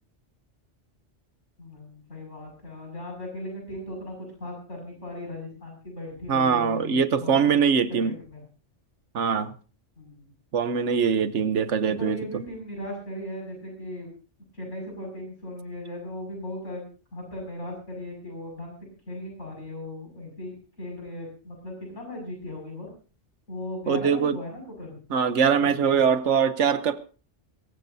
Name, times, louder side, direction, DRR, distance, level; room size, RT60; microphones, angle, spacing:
voice 1, 1.6-7.6 8.0-8.4 10.0-10.3 11.8-14.1 14.5-18.7 19.1-22.9 23.5-25.0 25.6-26.0, left 1 dB, 80° left, 0 dB, 6.8 m, -38 dB
voice 2, 6.3-8.1 9.1-9.5 10.5-12.2 23.9-24.4 25.1-27.0, right 6 dB, 80° right, 13 dB, 1.3 m, -22 dB
22.5 x 15.5 x 2.7 m, 0.36 s
omnidirectional pair, 1.2 m